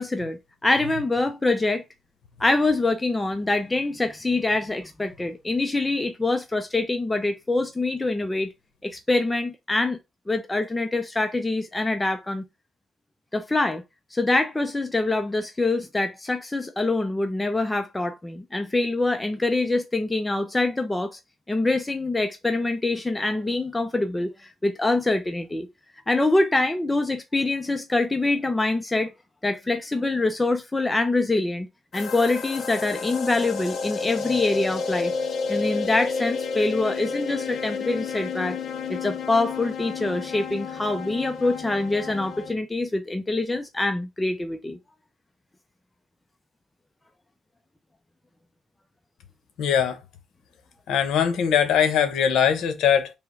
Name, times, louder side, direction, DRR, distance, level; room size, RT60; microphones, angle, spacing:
voice 1, 0.0-1.8 2.4-8.5 8.8-10.0 10.3-12.4 13.3-13.8 14.1-21.2 21.5-25.7 26.1-29.1 29.4-31.7 31.9-35.1 35.5-38.6 38.9-44.8, left 2 dB, 15° left, 0.5 m, -25 dB
sound 1, 31.9-42.5, left 5 dB, 60° left, 0.6 m, -31 dB
voice 2, 49.6-50.0 50.9-53.1, left 8 dB, 80° left, 0.9 m, -21 dB
3.4 x 3.0 x 4.5 m
cardioid pair, 90°, 0 cm